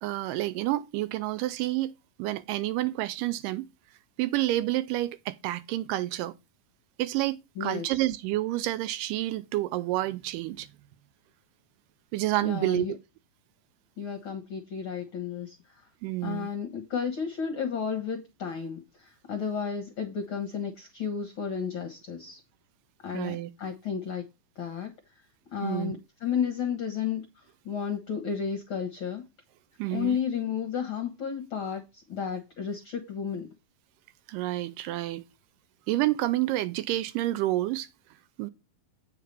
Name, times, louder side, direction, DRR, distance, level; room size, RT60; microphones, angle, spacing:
voice 1, 0.0-1.9 2.2-3.7 4.2-6.3 7.0-10.7 12.1-12.9 16.0-16.5 23.1-23.5 25.6-25.9 29.8-30.2 34.3-35.2 35.9-37.9 38.4-38.5, right 16 dB, 80° right, 2.1 m, -29 dB
voice 2, 7.6-8.0 12.4-12.9 14.0-15.9 16.2-22.4 23.0-24.2 24.5-25.2 25.5-29.2 29.9-33.5, left 7 dB, 65° left, 1.3 m, -33 dB
8.5 x 4.8 x 5.3 m
omnidirectional pair, 4.0 m